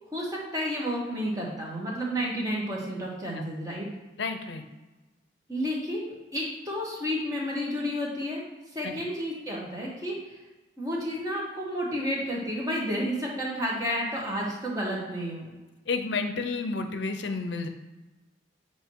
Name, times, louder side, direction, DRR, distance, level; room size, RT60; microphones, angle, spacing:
voice 1, 0.1-3.9 5.5-8.4 8.7-10.4 10.8-15.5, equal, 20° right, -3 dB, 1.3 m, -31 dB
voice 2, 4.2-4.6 8.8-9.0 15.9-17.7, left 4 dB, 65° left, 7 dB, 0.6 m, -31 dB
7.7 x 2.8 x 4.7 m, 1.1 s
head